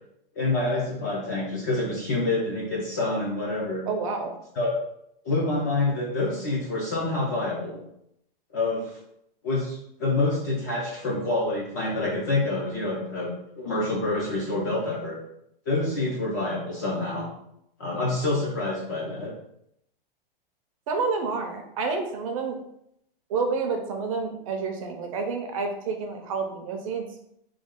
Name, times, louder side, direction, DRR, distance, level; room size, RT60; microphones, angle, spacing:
voice 1, 0.4-3.8 4.6-4.7 5.2-7.8 8.5-9.0 9.4-15.2 15.7-17.3 17.8-19.3, left 2 dB, 20° left, -4 dB, 0.4 m, -27 dB
voice 2, 3.9-4.3 20.9-22.6 23.3-27.0, right 4 dB, 35° right, 4 dB, 0.5 m, -29 dB
3.1 x 2.2 x 3.6 m, 0.76 s
supercardioid pair, 170°, 29 cm